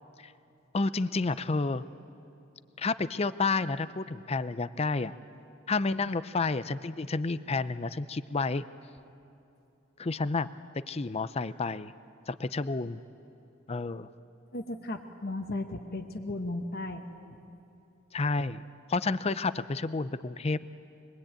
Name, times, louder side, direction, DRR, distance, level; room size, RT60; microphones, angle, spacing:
voice 1, 0.7-1.8 2.8-5.1 5.7-8.6 10.0-10.5 10.9-11.9 12.3-13.0 13.7-14.1 18.1-18.6 18.9-20.6, left 3 dB, 30° left, 14 dB, 0.5 m, -30 dB
voice 2, 14.5-17.1, left 2 dB, 50° left, 4 dB, 1.2 m, -35 dB
25.0 x 21.0 x 8.9 m, 2.7 s
head